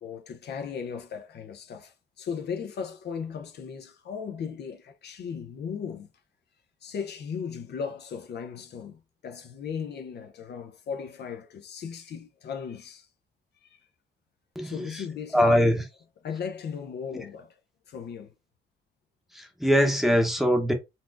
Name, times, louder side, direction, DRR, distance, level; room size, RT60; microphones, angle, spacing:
voice 1, 0.0-6.1 6.8-13.1 13.6-13.8 14.6-15.6 16.2-17.6 17.9-18.3, left 6 dB, 55° left, 0.6 m, -37 dB
voice 2, 14.5-15.0 15.3-15.8 17.1-17.3 19.3-20.7, equal, ahead, 0.8 m, -23 dB
4.0 x 2.3 x 2.5 m
cardioid pair, 90°, 20 cm